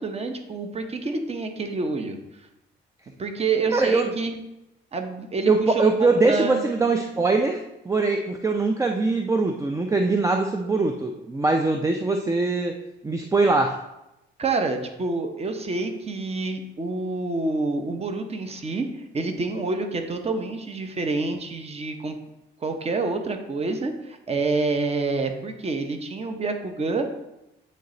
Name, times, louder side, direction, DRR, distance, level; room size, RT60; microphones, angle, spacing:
voice 1, 0.0-2.2 3.2-4.4 4.9-6.6 14.4-18.9 19.1-22.2 22.6-27.1, right 3 dB, 30° right, 5 dB, 0.8 m, -27 dB
voice 2, 3.7-4.1 5.5-12.7 13.0-13.8, right 3 dB, 15° right, 4 dB, 0.4 m, -22 dB
8.5 x 3.2 x 3.8 m, 0.91 s
cardioid pair, 90°, 20 cm